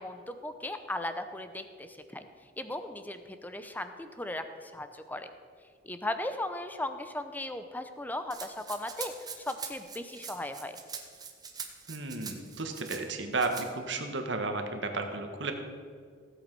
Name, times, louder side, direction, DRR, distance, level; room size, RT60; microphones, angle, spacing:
voice 1, 0.0-2.2 2.6-5.3 5.8-9.1 9.5-10.8, left 1 dB, 10° left, 9 dB, 0.7 m, -37 dB
Rattle (instrument), 8.3-13.0 13.4-13.7, right 6 dB, 20° right, 1.0 m, -43 dB
voice 2, 11.9-15.5, right 3 dB, 70° right, 5 dB, 1.5 m, -33 dB
16.5 x 8.1 x 5.4 m, 2.1 s
head